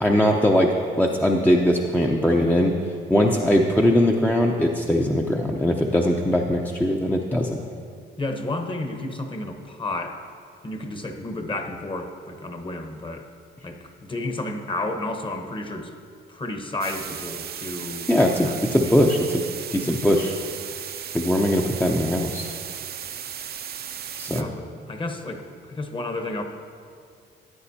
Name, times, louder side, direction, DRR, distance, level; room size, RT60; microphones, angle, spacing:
voice 1, 0.0-2.8 3.1-7.6 18.1-19.4 19.7-20.3 21.1-22.5 24.2-24.5, left 1 dB, 10° left, 0 dB, 0.6 m, -21 dB
voice 2, 8.2-10.2 10.6-13.3 13.6-15.9 16.3-18.2 18.4-18.8 24.3-26.4, left 2 dB, 25° left, 5 dB, 1.0 m, -32 dB
sound 1, 16.8-24.4, right 8 dB, 50° right, 0.5 m, -35 dB
14.0 x 9.4 x 2.8 m, 2.3 s
cardioid pair, 90°, 20 cm